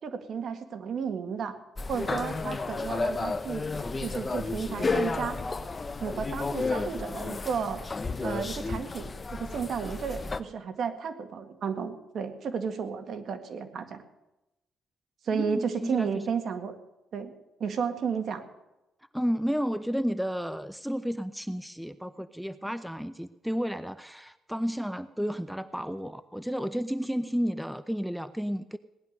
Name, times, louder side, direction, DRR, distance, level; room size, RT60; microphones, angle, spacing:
voice 1, 0.0-1.6 1.9-3.6 4.0-5.4 6.0-7.8 8.2-14.0 15.2-16.8 17.1-17.3 17.6-18.4, right 6 dB, 60° right, 7 dB, 1.9 m, -33 dB
sound 1, 1.8-10.4, left 3 dB, 30° left, 0.8 m, -32 dB
voice 2, 15.3-16.3 19.1-28.8, equal, ahead, 13 dB, 0.6 m, -32 dB
18.5 x 11.0 x 6.6 m, 0.94 s
cardioid pair, 90°, 0 cm